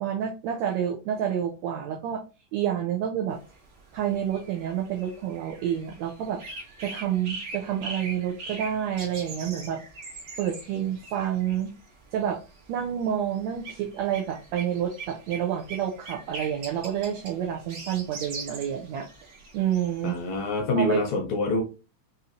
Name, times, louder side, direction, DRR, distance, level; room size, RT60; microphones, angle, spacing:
voice 1, 0.0-2.2 2.5-3.4 3.9-6.4 6.8-9.8 10.4-11.7 12.1-12.4 12.7-20.2 20.7-21.0, right 9 dB, 80° right, 2 dB, 1.6 m, -29 dB
sound 1, 3.3-20.6, right 3 dB, 55° right, 1.4 m, -42 dB
voice 2, 20.0-21.6, left 2 dB, 75° left, 3 dB, 1.7 m, -26 dB
5.5 x 2.7 x 2.5 m, 0.31 s
omnidirectional pair, 3.7 m